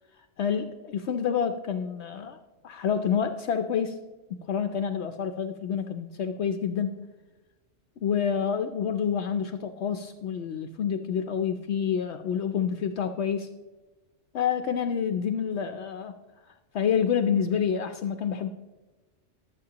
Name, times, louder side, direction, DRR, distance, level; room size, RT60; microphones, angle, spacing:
voice 1, 0.4-2.4 2.6-4.0 4.5-6.9 8.0-13.5 14.3-16.1 16.7-18.5, left 7 dB, 70° left, 7 dB, 0.9 m, -28 dB
21.5 x 7.8 x 2.9 m, 1.2 s
omnidirectional pair, 1.2 m